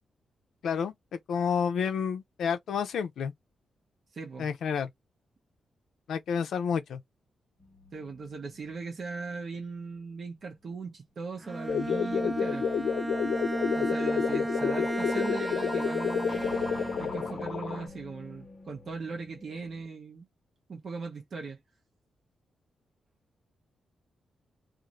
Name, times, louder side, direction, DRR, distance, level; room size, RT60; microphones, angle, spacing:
voice 1, 0.6-3.3 4.4-4.9 6.1-7.0, left 7 dB, 80° left, 0.5 m, -30 dB
voice 2, 4.1-4.5 7.9-12.7 13.7-16.4 17.0-20.3 20.7-21.6, right 4 dB, 45° right, 0.8 m, -39 dB
sound 1, 7.6-10.5 16.3-19.8, left 3 dB, 25° left, 1.0 m, -47 dB
Bowed string instrument, 11.4-17.5, right 1 dB, 15° right, 0.4 m, -33 dB
sound 2, 11.7-17.8, left 7 dB, 60° left, 1.0 m, -30 dB
2.5 x 2.5 x 3.0 m
wide cardioid pair, 140°, 0 cm